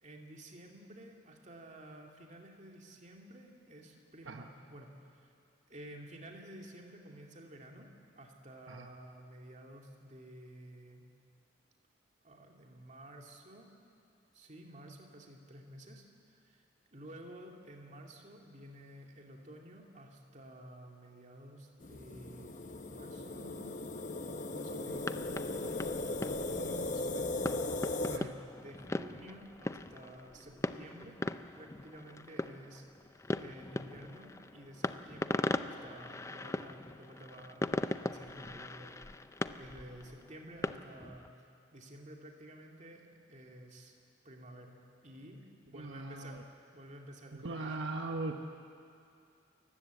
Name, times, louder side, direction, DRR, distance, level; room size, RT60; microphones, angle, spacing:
voice 1, 0.0-5.3 5.7-7.9 8.2-11.0 12.2-13.7 14.3-16.0 16.3-16.6 16.9-22.6 22.9-23.8 24.5-25.2 25.5-27.4 28.1-31.2 31.6-37.7 38.0-39.1 39.6-43.9 44.2-44.8 45.0-45.4 45.7-48.1, right 1 dB, 40° right, 1 dB, 2.5 m, -52 dB
sound 1, 21.8-28.2, left 2 dB, 40° left, 0.9 m, -37 dB
sound 2, 24.9-41.3, left 2 dB, 15° left, 0.5 m, -40 dB
voice 2, 45.7-46.4 47.3-48.4, right 2 dB, 75° right, 4 dB, 1.1 m, -39 dB
29.0 x 15.0 x 8.3 m, 2.5 s
head